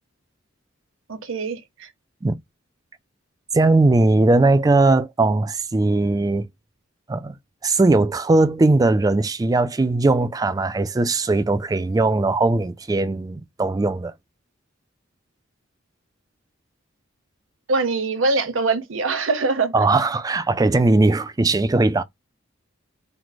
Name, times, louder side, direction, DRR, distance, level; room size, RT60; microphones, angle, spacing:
voice 1, 1.1-1.9 17.7-19.8, right 3 dB, 75° right, 0.9 m, -23 dB
voice 2, 3.5-6.5 7.1-7.3 7.6-14.1 19.7-22.0, right 2 dB, 20° right, 0.3 m, -19 dB
4.5 x 2.0 x 4.0 m
head